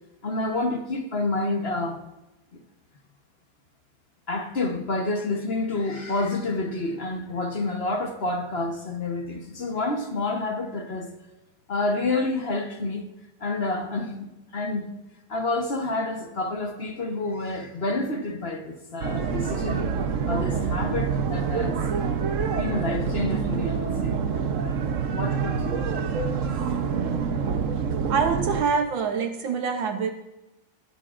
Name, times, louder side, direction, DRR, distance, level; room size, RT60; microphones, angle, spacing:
voice 1, 0.2-2.0 4.3-11.1 11.7-13.1 13.4-14.9 15.3-19.9 20.3-22.0 22.6-24.1 25.0-25.8 26.7-26.8, left 2 dB, 40° left, 1.0 m, -29 dB
sound 1, 19.0-28.6, right 6 dB, 55° right, 0.9 m, -26 dB
voice 2, 28.1-30.1, right 5 dB, 75° right, 1.6 m, -25 dB
20.0 x 11.0 x 2.5 m
omnidirectional pair, 2.2 m